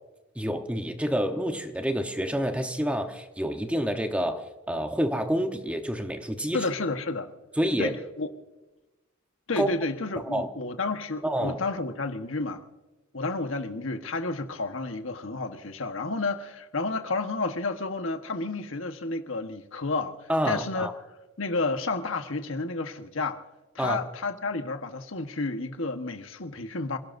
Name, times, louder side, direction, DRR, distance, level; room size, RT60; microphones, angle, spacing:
voice 1, 0.4-6.6 7.6-7.9 9.6-9.7 10.3-10.5 11.2-11.6 20.3-20.9 23.8-24.0, equal, 5° right, 1.0 m, -28 dB
voice 2, 6.5-7.3 7.8-8.3 9.5-12.6 13.1-20.9 21.4-23.4 23.7-27.0, left 3 dB, 80° left, 1.3 m, -31 dB
27.5 x 17.5 x 2.7 m
head